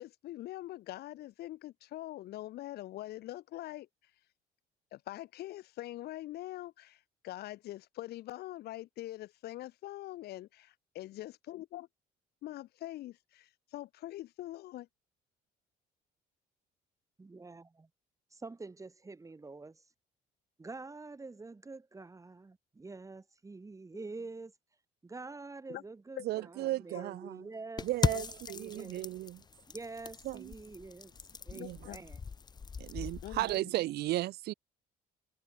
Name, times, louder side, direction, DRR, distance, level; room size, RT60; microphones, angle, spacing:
voice 1, 0.0-3.9 4.9-11.9 12.4-14.9 25.7-25.8 26.2-26.3 26.6-26.7 26.9-27.0 28.0-28.3 28.8-29.0 31.5-32.0 33.2-33.5, left 15 dB, 70° left, 1.3 m, -43 dB
voice 2, 17.2-17.9 18.3-19.9 20.6-24.5 25.0-29.0 29.7-31.1 31.5-32.2, right 3 dB, 20° right, 5.1 m, -47 dB
voice 3, 26.2-27.5 27.8-29.4 30.2-30.5 31.5-31.8 32.8-34.5, right 16 dB, 70° right, 0.8 m, -35 dB
sound 1, 27.8-33.6, left 5 dB, 25° left, 0.8 m, -38 dB
cardioid pair, 110°, 17 cm